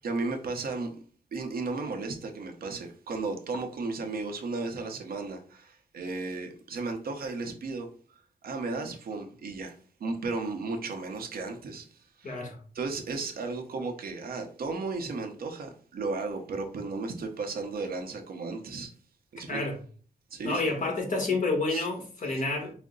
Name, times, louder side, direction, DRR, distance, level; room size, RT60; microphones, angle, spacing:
voice 1, 0.0-0.9 1.3-7.9 8.4-12.4 12.7-18.9 19.3-19.6 20.3-20.6 21.7-21.9 22.3-22.4, right 3 dB, 70° right, 0.9 m, -34 dB
voice 2, 12.2-12.6 19.5-19.8 20.4-22.7, left 3 dB, 55° left, 1.4 m, -29 dB
5.1 x 2.1 x 3.8 m
wide cardioid pair, 115°, 16 cm